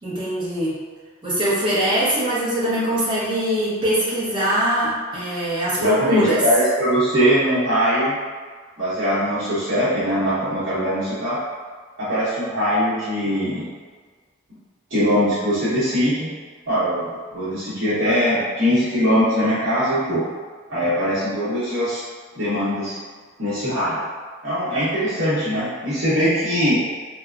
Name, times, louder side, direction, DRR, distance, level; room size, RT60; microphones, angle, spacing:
voice 1, 0.0-0.8 1.2-6.4, right 1 dB, 25° right, -10 dB, 0.8 m, -22 dB
voice 2, 5.8-8.2 8.8-11.4 12.0-13.6 14.9-16.3 16.7-20.2 20.7-22.0 22.3-23.0 23.4-24.0 24.4-26.8, equal, 65° right, -13 dB, 0.9 m, -21 dB
3.1 x 2.1 x 2.4 m, 1.5 s
head